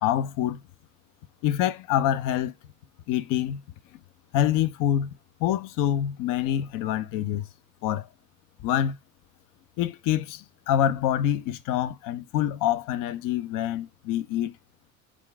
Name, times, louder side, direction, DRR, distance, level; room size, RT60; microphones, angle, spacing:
voice 1, 0.0-0.6 1.4-2.5 3.1-3.6 4.3-5.1 5.4-7.5 7.8-8.1 8.6-9.0 9.8-14.6, left 11 dB, 55° left, 0.6 m, -26 dB
4.2 x 2.4 x 4.6 m
figure-of-eight pair, 55°, 40 cm